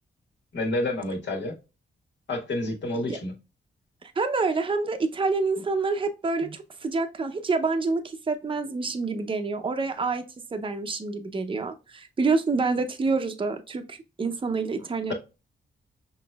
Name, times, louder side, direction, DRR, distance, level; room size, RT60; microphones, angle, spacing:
voice 1, 0.5-1.5 2.3-3.3, left 1 dB, 70° left, 1.7 m, -29 dB
voice 2, 4.2-10.2 10.5-15.1, right 4 dB, 25° right, 0.6 m, -27 dB
6.0 x 3.0 x 2.3 m
wide cardioid pair, 115°, 19 cm